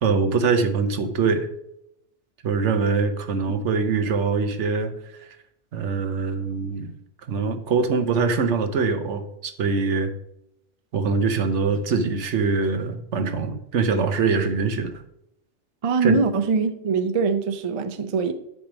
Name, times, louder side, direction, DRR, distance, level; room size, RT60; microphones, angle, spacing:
voice 1, 0.0-1.5 2.4-4.9 5.7-6.9 7.3-10.1 10.9-15.0 16.0-16.2, right 4 dB, 80° right, 1.2 m, -23 dB
voice 2, 15.8-18.3, right 4 dB, 45° right, 0.5 m, -23 dB
10.5 x 3.6 x 6.0 m
omnidirectional pair, 1.2 m